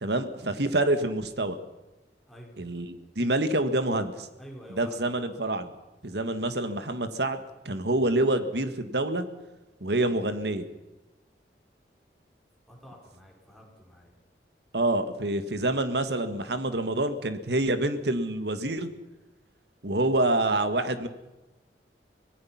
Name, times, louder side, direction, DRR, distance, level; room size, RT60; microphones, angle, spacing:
voice 1, 0.0-1.6 2.6-4.3 4.7-5.7 6.0-7.4 7.7-9.3 9.8-10.7 14.7-18.9 19.8-21.1, right 2 dB, 70° right, 9 dB, 1.7 m, -27 dB
voice 2, 4.4-5.0 12.7-14.1, equal, ahead, -2 dB, 4.7 m, -48 dB
24.5 x 18.5 x 5.9 m, 1.1 s
head